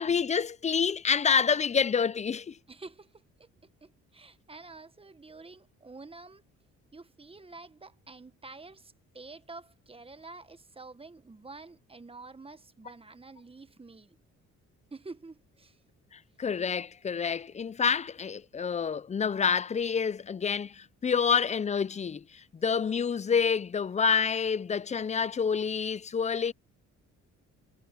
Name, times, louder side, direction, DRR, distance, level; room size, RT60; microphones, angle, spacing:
voice 1, 0.0-2.6 16.4-22.2 22.5-26.5, left 6 dB, 25° left, 0.4 m, -28 dB
voice 2, 2.7-6.4 6.9-14.2 14.9-15.8, right 3 dB, 20° right, 1.4 m, -48 dB
cardioid pair, 90°, 30 cm